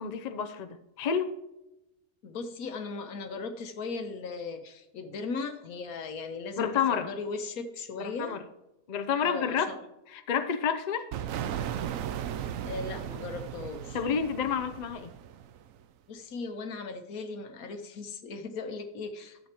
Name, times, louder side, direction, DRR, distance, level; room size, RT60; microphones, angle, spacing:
voice 1, 0.0-1.4 6.6-7.1 8.0-8.4 8.9-9.7 10.1-11.1 13.9-15.1, left 7 dB, 45° left, 8 dB, 0.5 m, -29 dB
voice 2, 2.2-8.4 9.2-9.8 12.6-14.0 16.1-19.4, left 4 dB, 90° left, 7 dB, 1.4 m, -37 dB
sound 1, 11.1-15.8, right 9 dB, 75° right, 1.0 m, -36 dB
12.5 x 7.8 x 3.0 m, 0.93 s
omnidirectional pair, 1.5 m